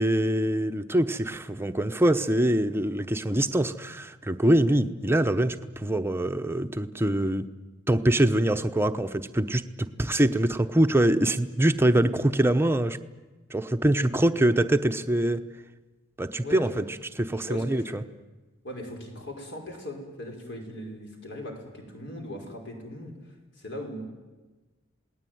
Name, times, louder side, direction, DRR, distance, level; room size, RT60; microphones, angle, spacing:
voice 1, 0.0-7.5 7.9-13.0 13.5-15.4 16.2-16.8 17.2-18.0, right 1 dB, 10° right, 8 dB, 0.9 m, -24 dB
voice 2, 16.4-16.9 17.3-18.0 18.6-23.2 23.6-24.0, left 1 dB, 60° left, 3 dB, 5.5 m, -39 dB
28.0 x 19.0 x 9.4 m, 1.2 s
head